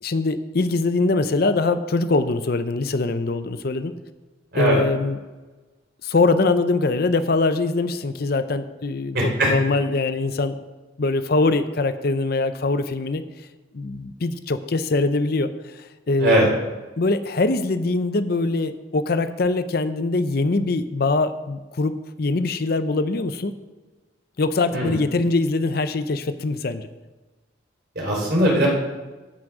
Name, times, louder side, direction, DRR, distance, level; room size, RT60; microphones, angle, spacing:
voice 1, 0.0-3.9 4.6-5.2 6.0-9.2 9.4-10.6 11.0-13.2 13.7-16.5 17.0-23.5 24.4-26.9, left 3 dB, 50° left, 11 dB, 0.6 m, -23 dB
voice 2, 9.1-9.5 16.2-16.5 24.7-25.0 28.0-28.7, right 1 dB, 55° right, -3 dB, 4.1 m, -20 dB
15.0 x 6.1 x 4.9 m, 1.2 s
head